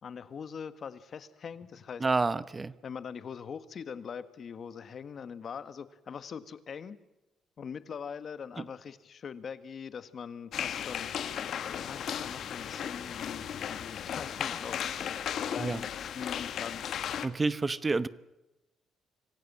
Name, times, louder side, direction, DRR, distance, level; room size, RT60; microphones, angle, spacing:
voice 1, 0.0-2.0 2.8-7.0 7.6-11.1 11.8-14.8 15.5-16.8, left 6 dB, 55° left, 13 dB, 1.6 m, -42 dB
voice 2, 2.0-2.7 8.6-8.7 15.6-15.8 17.2-18.1, right 3 dB, 25° right, 16 dB, 1.0 m, -29 dB
sound 1, 10.5-17.3, left 9 dB, 70° left, 1.6 m, -35 dB
26.0 x 16.5 x 7.5 m, 0.99 s
cardioid pair, 90°, 0 cm